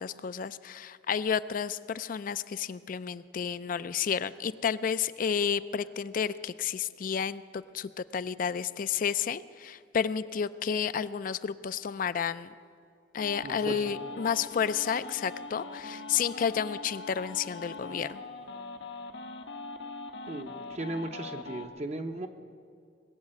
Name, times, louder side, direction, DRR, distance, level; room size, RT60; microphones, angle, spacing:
voice 1, 0.0-12.5 13.1-18.2, left 7 dB, 50° left, 15 dB, 0.4 m, -31 dB
sound 1, 13.2-21.7, left 3 dB, 80° left, 1.1 m, -42 dB
voice 2, 13.4-13.8 20.3-22.3, right 2 dB, 40° right, 5 dB, 0.7 m, -36 dB
20.5 x 7.2 x 8.7 m, 2.3 s
head